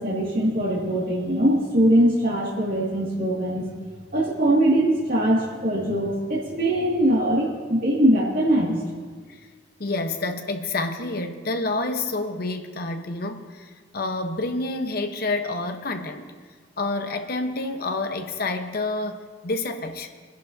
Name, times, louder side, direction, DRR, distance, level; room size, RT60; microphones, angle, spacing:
voice 1, 0.0-3.7 4.1-8.8, right 1 dB, 55° right, -6 dB, 2.1 m, -22 dB
voice 2, 9.8-16.3 16.8-20.1, left 2 dB, 55° left, 6 dB, 1.0 m, -28 dB
23.0 x 11.0 x 2.7 m, 1.5 s
head